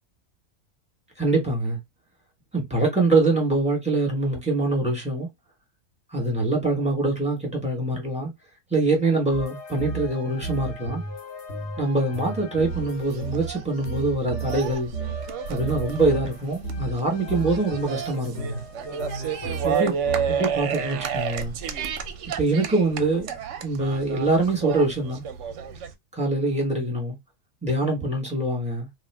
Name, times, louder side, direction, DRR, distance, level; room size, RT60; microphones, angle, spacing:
voice 1, 1.2-1.8 2.5-5.3 6.1-8.3 8.7-11.0 11.8-14.9 15.5-18.6 19.6-19.9 20.3-21.5 22.4-23.3 23.6-25.2 26.1-27.2 27.6-28.9, right 2 dB, 5° right, 1.2 m, -24 dB
sound 1, 9.3-20.5, right 3 dB, 60° left, 1.2 m, -34 dB
sound 2, 12.6-25.9, right 7 dB, 65° right, 0.8 m, -31 dB
2.6 x 2.4 x 3.3 m
omnidirectional pair, 1.4 m